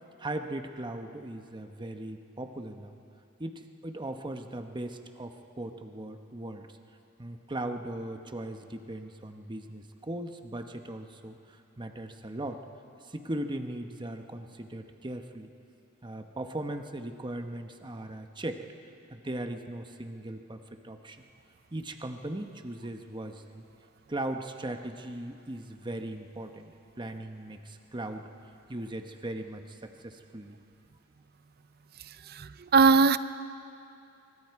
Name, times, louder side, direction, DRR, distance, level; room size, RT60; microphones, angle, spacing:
voice 1, 0.2-3.0 3.4-6.8 7.2-12.6 13.0-15.5 16.0-18.6 19.1-21.2 21.7-23.6 24.1-30.6, right 1 dB, 20° right, 6 dB, 1.0 m, -38 dB
voice 2, 32.4-33.2, right 4 dB, 50° right, 14 dB, 0.5 m, -20 dB
24.5 x 23.5 x 4.7 m, 2.7 s
head